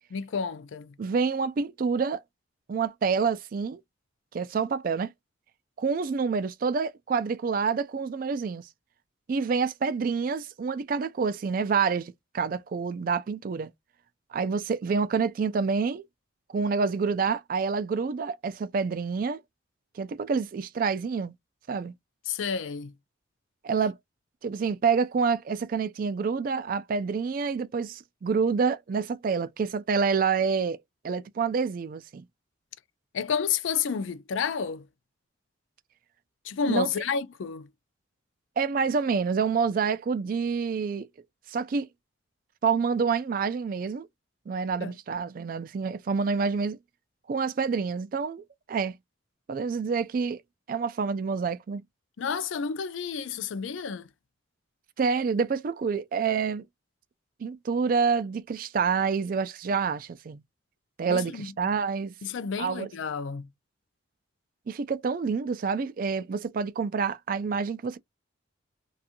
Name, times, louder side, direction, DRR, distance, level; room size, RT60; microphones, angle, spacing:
voice 1, 0.1-1.0 22.3-22.9 33.1-34.9 36.4-37.7 44.8-44.9 52.2-54.1 61.1-61.5 62.2-63.5, left 6 dB, 75° left, 0.4 m, -30 dB
voice 2, 1.0-2.2 2.7-3.8 4.3-5.1 5.8-8.7 9.3-13.7 14.3-16.1 16.5-19.4 19.9-21.3 21.7-21.9 23.6-24.0 24.4-30.8 31.0-32.2 36.7-36.9 38.6-41.1 41.5-41.9 42.6-44.1 44.5-46.8 47.3-49.0 49.5-50.4 50.7-51.8 55.0-56.6 57.4-60.4 61.0-62.1 62.6-62.9 64.7-68.0, right 5 dB, 45° right, 0.3 m, -27 dB
2.5 x 2.3 x 2.7 m
head